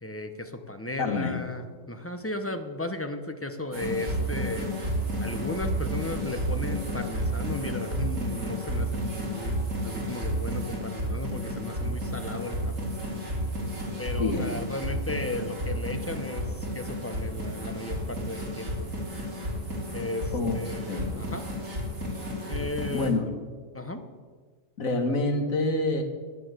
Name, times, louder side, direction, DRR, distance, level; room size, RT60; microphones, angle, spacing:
voice 1, 0.0-4.7 5.2-13.2 14.0-18.9 19.9-21.4 22.5-23.2 23.7-24.0, left 2 dB, 10° left, 7 dB, 0.8 m, -35 dB
voice 2, 1.0-1.4 14.2-14.5 20.3-20.6 20.9-21.2 22.9-23.2 24.8-26.0, left 3 dB, 90° left, 5 dB, 1.9 m, -27 dB
sound 1, 3.7-23.1, equal, 70° right, 3.2 m, -32 dB
11.0 x 9.7 x 8.1 m, 1.5 s
omnidirectional pair, 1.4 m